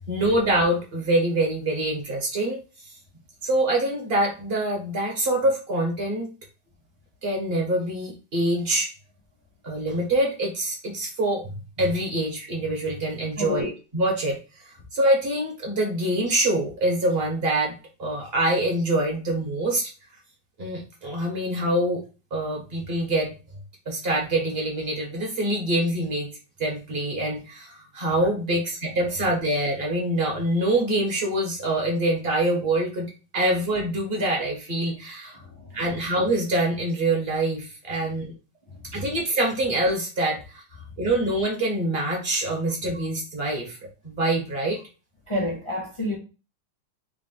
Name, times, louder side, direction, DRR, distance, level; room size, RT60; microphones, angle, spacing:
voice 1, 0.1-2.6 3.4-6.3 7.2-8.9 9.6-14.4 14.9-19.9 20.6-22.0 22.3-23.3 23.9-26.3 26.6-35.4 35.7-38.3 38.9-40.6 41.0-43.8 44.0-44.8, right 1 dB, 35° right, 1.2 m, -25 dB
voice 2, 13.4-13.7 28.2-28.6 35.3-36.1 38.7-39.0 42.9-43.1 45.3-46.2, left 1 dB, 35° left, 0.4 m, -31 dB
3.8 x 2.5 x 3.8 m
omnidirectional pair, 2.2 m